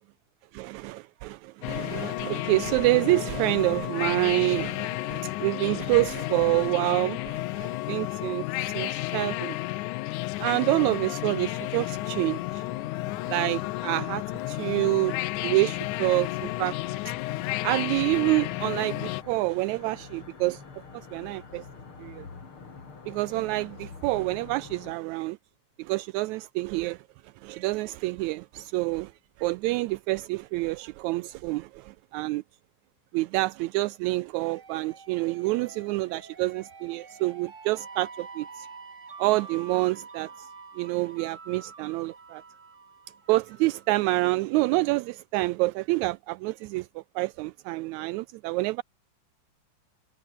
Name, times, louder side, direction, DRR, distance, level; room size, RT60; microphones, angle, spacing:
voice 1, 0.5-9.6 10.4-12.6 13.3-15.2 15.4-16.7 17.1-17.2 17.6-20.6 20.9-21.6 22.0-22.3 23.1-25.4 25.8-27.0 27.4-29.1 29.4-32.4 33.1-38.7 39.2-40.5 40.7-42.4 43.3-48.8, right 20 dB, 80° right, 1.7 m, -27 dB
sound 1, 1.6-19.2, left 18 dB, 75° left, 2.1 m, -32 dB
sound 2, 10.8-24.9, left 4 dB, 40° left, 4.3 m, -47 dB
sound 3, 34.3-44.0, right 5 dB, 30° right, 1.7 m, -47 dB
omnidirectional pair, 3.7 m